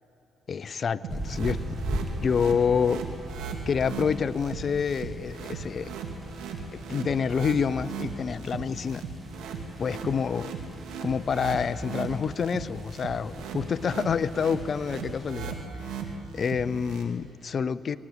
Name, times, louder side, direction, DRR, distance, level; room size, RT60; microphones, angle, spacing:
voice 1, 0.5-1.6 2.2-3.0 3.7-5.9 6.7-9.0 9.8-10.5 11.0-15.6 16.3-18.0, left 6 dB, 50° left, 15 dB, 0.6 m, -27 dB
sound 1, 1.0-17.0, right 5 dB, 85° right, 2.1 m, -37 dB
sound 2, 1.1-15.5, right 1 dB, 10° right, 2.2 m, -40 dB
19.5 x 19.0 x 8.2 m, 2.8 s
cardioid pair, 90°, 0 cm